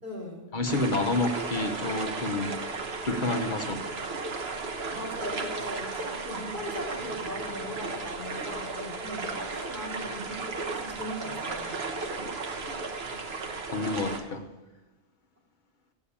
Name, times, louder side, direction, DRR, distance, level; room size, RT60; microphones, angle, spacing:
voice 1, 0.0-0.4 4.9-11.7, left 1 dB, 50° right, -5 dB, 3.3 m, -39 dB
voice 2, 0.5-3.8 13.7-14.5, left 2 dB, 55° left, 4 dB, 1.0 m, -29 dB
sound 1, 0.7-14.2, right 4 dB, 80° right, 1.3 m, -35 dB
8.5 x 8.2 x 8.6 m, 1.1 s
omnidirectional pair, 1.0 m